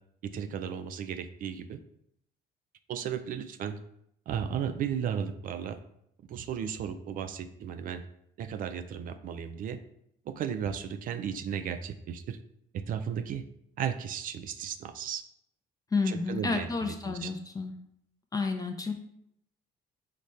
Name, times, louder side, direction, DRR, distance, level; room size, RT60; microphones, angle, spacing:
voice 1, 0.2-1.8 2.9-3.8 4.3-5.8 6.3-8.0 8.4-9.8 10.3-12.4 12.7-13.4 13.8-15.2 16.1-17.3, right 8 dB, 55° right, 10 dB, 0.4 m, -35 dB
voice 2, 15.9-17.7 18.3-18.9, left 4 dB, 20° left, 4 dB, 0.4 m, -30 dB
4.9 x 2.1 x 4.1 m, 0.74 s
cardioid pair, 110°, 17 cm